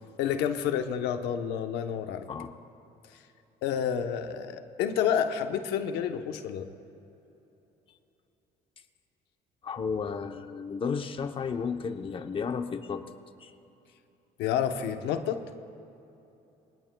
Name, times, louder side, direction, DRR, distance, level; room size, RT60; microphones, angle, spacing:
voice 1, 0.2-2.3 3.6-6.7 14.4-15.4, left 8 dB, 90° left, 7 dB, 0.9 m, -29 dB
voice 2, 9.6-13.1 13.4-13.5, left 5 dB, 30° left, 7 dB, 0.8 m, -33 dB
23.0 x 18.0 x 2.3 m, 2.9 s
cardioid pair, 110°, 17 cm